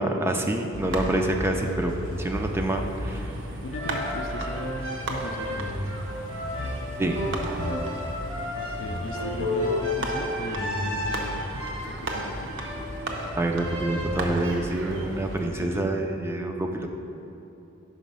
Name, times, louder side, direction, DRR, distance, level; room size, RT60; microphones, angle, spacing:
voice 1, 0.0-1.9 2.2-3.2 7.0-7.6 13.3-16.9, right 1 dB, 10° right, 3 dB, 0.3 m, -27 dB
sound 1, 0.7-15.5, right 1 dB, 65° right, 0.7 m, -35 dB
voice 2, 2.8-5.6 8.6-12.5 15.4-15.9, left 2 dB, 65° left, 6 dB, 0.4 m, -38 dB
sound 2, 3.7-14.4, left 1 dB, 90° right, 1.4 m, -32 dB
5.4 x 5.0 x 5.3 m, 2.9 s
head